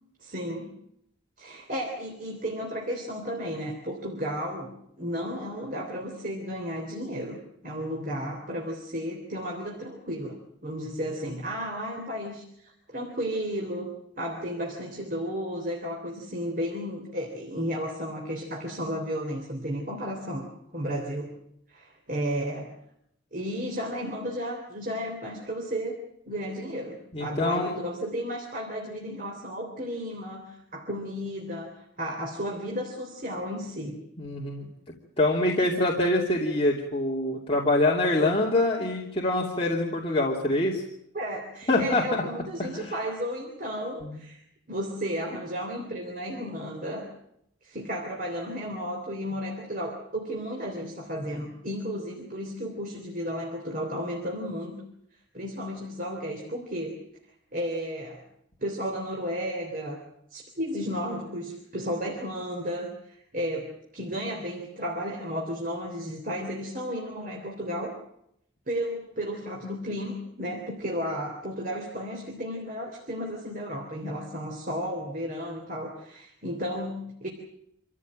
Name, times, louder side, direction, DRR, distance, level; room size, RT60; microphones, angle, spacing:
voice 1, 0.2-0.7 1.4-20.5 20.7-21.4 21.7-22.7 23.3-34.0 41.1-47.1 47.6-54.8 55.3-57.0 57.5-58.2 58.6-60.0 60.3-68.0 68.7-77.3, equal, 40° right, 1 dB, 3.5 m, -33 dB
voice 2, 27.1-27.8 34.2-34.7 35.2-40.8 41.7-42.2 42.6-42.9 44.0-44.2, left 2 dB, 30° left, -3 dB, 2.8 m, -25 dB
26.5 x 15.0 x 8.8 m, 0.77 s
head